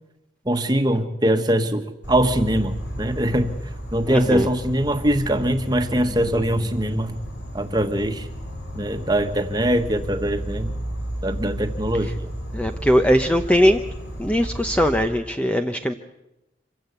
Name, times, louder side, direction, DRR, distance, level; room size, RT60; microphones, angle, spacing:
voice 1, 0.4-3.6 3.9-7.2 7.5-8.3 8.7-10.7 11.2-12.3, right 1 dB, 20° right, 6 dB, 1.4 m, -22 dB
Insect, 2.0-15.0, equal, 75° left, 5.9 m, -33 dB
voice 2, 4.1-4.5 12.5-13.8 14.2-15.9, equal, 5° left, 6 dB, 0.7 m, -20 dB
26.0 x 16.0 x 8.2 m, 0.92 s
head